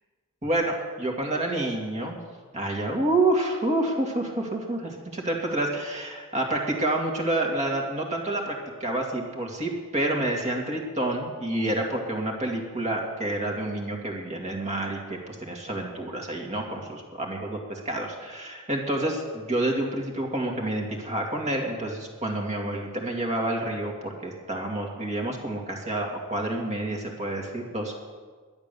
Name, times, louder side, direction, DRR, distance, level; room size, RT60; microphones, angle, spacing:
voice 1, 0.4-2.2 2.5-8.5 8.8-27.9, right 1 dB, 35° right, 0 dB, 2.3 m, -28 dB
12.0 x 10.5 x 6.9 m, 1.5 s
head